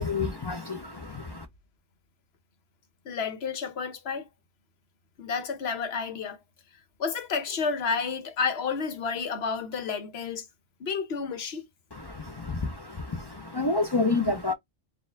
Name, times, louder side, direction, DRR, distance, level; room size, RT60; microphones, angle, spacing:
voice 1, 0.0-1.5 11.9-14.5, left 3 dB, 35° left, 0.4 m, -29 dB
voice 2, 3.0-4.3 5.2-6.4 7.0-10.5 10.8-11.7, left 5 dB, 65° left, 1.1 m, -30 dB
4.4 x 2.5 x 3.4 m
omnidirectional pair, 1.2 m